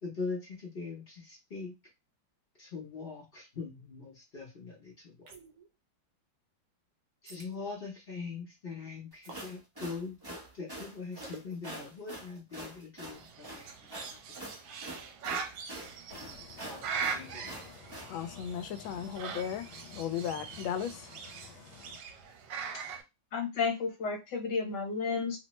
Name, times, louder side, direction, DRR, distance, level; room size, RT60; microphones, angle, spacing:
voice 1, 0.0-1.7 2.6-5.3 7.2-10.2 10.5-14.9 15.7-16.2 16.6-17.6, left 4 dB, 45° left, 0.7 m, -42 dB
sound 1, 5.3-5.7 7.2-7.5 9.2-9.5 11.2-11.5, right 5 dB, 55° right, 1.0 m, -49 dB
sound 2, 9.1-18.1, right 1 dB, 30° right, 0.4 m, -45 dB
Bird, 13.1-23.0, right 6 dB, 75° right, 1.3 m, -41 dB
voice 2, 16.1-16.7 17.7-22.0, left 9 dB, 85° left, 1.3 m, -38 dB
voice 3, 23.3-25.4, left 5 dB, 65° left, 1.5 m, -32 dB
3.2 x 2.1 x 3.0 m
omnidirectional pair, 2.1 m